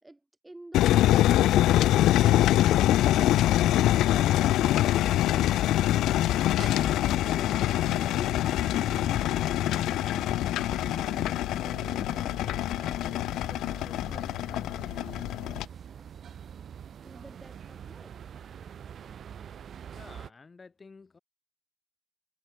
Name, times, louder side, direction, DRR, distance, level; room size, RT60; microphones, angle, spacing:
voice 1, 0.0-5.8 7.0-9.8 10.8-16.2 17.0-18.2, right 2 dB, 10° right, 2.5 m, -51 dB
sound 1, 0.7-15.6, left 14 dB, 75° left, 0.5 m, -24 dB
sound 2, 2.1-20.3, right 8 dB, 40° right, 6.3 m, -46 dB
voice 2, 19.9-21.2, left 4 dB, 20° left, 4.4 m, -51 dB
cardioid pair, 175°, 0 cm